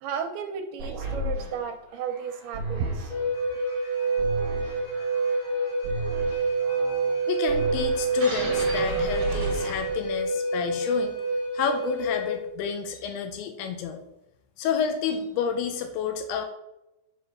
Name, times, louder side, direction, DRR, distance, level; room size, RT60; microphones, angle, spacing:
voice 1, 0.0-3.1, right 6 dB, 85° right, 6 dB, 2.5 m, -33 dB
sound 1, 0.8-10.2, right 2 dB, 45° right, 2.2 m, -34 dB
Wind instrument woodwind instrument, 3.1-12.4, right 3 dB, 70° left, 2.5 m, -27 dB
voice 2, 7.3-11.2 11.5-14.0 14.6-16.5, left 7 dB, 85° left, 7 dB, 2.6 m, -29 dB
7.7 x 4.0 x 5.3 m, 0.92 s
omnidirectional pair, 4.7 m